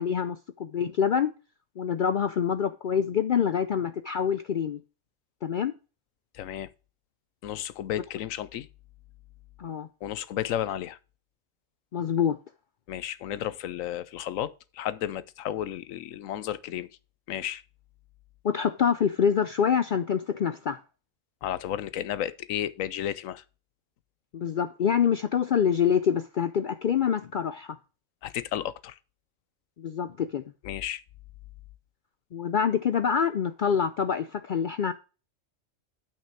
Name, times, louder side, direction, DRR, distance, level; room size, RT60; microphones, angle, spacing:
voice 1, 0.0-1.3 1.8-4.8 5.4-5.7 9.6-9.9 11.9-12.4 18.4-20.8 24.3-27.8 29.8-30.4 32.3-34.9, left 7 dB, 65° left, 0.5 m, -26 dB
voice 2, 6.3-6.7 7.4-8.7 10.0-11.0 12.9-16.9 17.3-17.6 21.4-23.4 28.2-29.0 30.6-31.0, left 11 dB, 85° left, 1.1 m, -33 dB
9.1 x 5.8 x 4.6 m
omnidirectional pair, 1.4 m